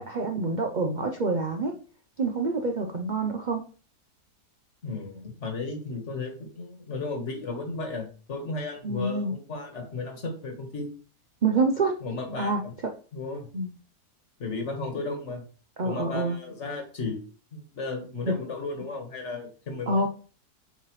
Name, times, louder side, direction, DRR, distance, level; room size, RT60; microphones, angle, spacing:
voice 1, 0.0-1.8 2.2-3.6 8.8-9.3 11.4-12.0 12.4-12.6 13.5-13.7 15.8-16.4 18.3-18.4 19.9-20.1, right 3 dB, 75° right, 3 dB, 0.4 m, -26 dB
voice 2, 4.8-10.9 12.0-12.7 13.1-13.5 14.4-15.4 15.8-17.2 17.5-20.1, left 3 dB, 45° left, 3 dB, 1.7 m, -34 dB
7.8 x 4.7 x 3.1 m, 0.38 s
omnidirectional pair, 1.8 m